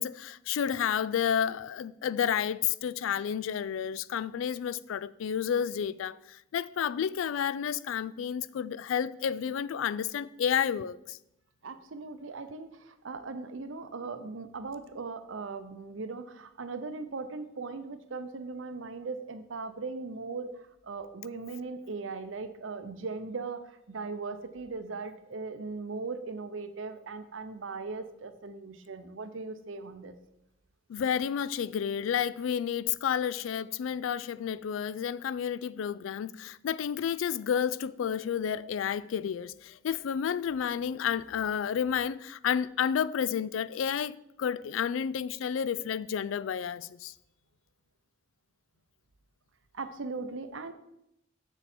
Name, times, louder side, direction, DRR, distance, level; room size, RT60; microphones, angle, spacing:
voice 1, 0.0-11.2 30.9-47.1, left 8 dB, 85° left, 0.3 m, -31 dB
voice 2, 11.6-20.5 20.8-30.2 49.7-50.7, right 4 dB, 75° right, 0.7 m, -39 dB
7.1 x 6.9 x 4.3 m
head